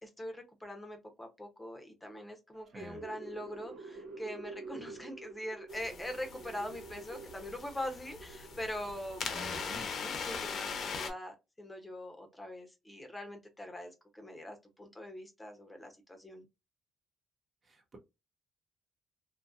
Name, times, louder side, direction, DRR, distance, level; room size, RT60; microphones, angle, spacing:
voice 1, 0.0-9.7 10.0-16.4, left 1 dB, 15° left, 0.8 m, -43 dB
sound 1, 2.5-9.8, right 3 dB, 80° right, 1.0 m, -49 dB
sound 2, 5.7-11.1, left 5 dB, 60° left, 0.8 m, -41 dB
voice 2, 9.3-9.9 17.6-18.0, left 1 dB, 40° right, 1.2 m, -48 dB
2.8 x 2.5 x 2.4 m
cardioid pair, 90°, 0 cm